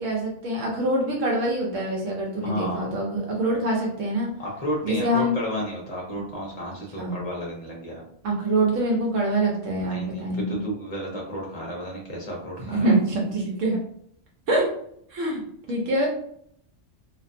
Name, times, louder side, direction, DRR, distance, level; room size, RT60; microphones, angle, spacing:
voice 1, 0.0-4.3 4.8-5.3 7.0-7.2 8.2-10.6 12.6-13.8 14.5-14.7 15.1-16.1, right 1 dB, 85° right, -2 dB, 1.0 m, -25 dB
voice 2, 2.4-2.9 4.4-8.0 9.8-12.9, equal, 40° left, -3 dB, 0.6 m, -32 dB
2.5 x 2.2 x 2.5 m, 0.68 s
omnidirectional pair, 1.3 m